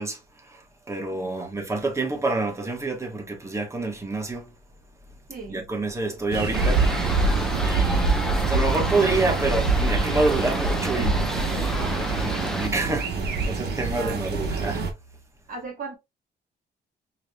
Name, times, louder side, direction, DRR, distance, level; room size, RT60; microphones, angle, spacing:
voice 1, 0.0-4.5 5.5-13.2 13.4-14.8, right 3 dB, 15° right, 1.3 m, -28 dB
voice 2, 1.1-1.5 5.3-5.6 13.9-14.3 15.5-16.0, right 4 dB, 50° right, 1.9 m, -37 dB
sound 1, 6.3-14.9, right 4 dB, 70° right, 1.2 m, -25 dB
sound 2, 6.5-12.7, left 1 dB, 5° left, 0.5 m, -31 dB
4.8 x 3.2 x 2.3 m
cardioid pair, 135°, 17 cm